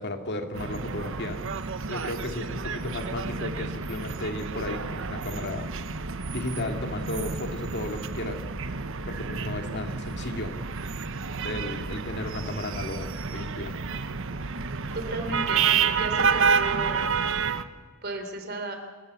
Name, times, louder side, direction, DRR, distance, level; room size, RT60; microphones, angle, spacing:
voice 1, 0.0-5.7 6.3-8.4 9.1-10.5 11.4-13.8, left 1 dB, 55° left, 5 dB, 2.5 m, -34 dB
sound 1, 0.5-17.6, right 5 dB, 65° right, 1.1 m, -29 dB
voice 2, 14.9-15.7 16.0-17.0 18.0-18.8, right 2 dB, 50° right, 5 dB, 3.3 m, -34 dB
26.0 x 14.5 x 8.3 m, 1.5 s
head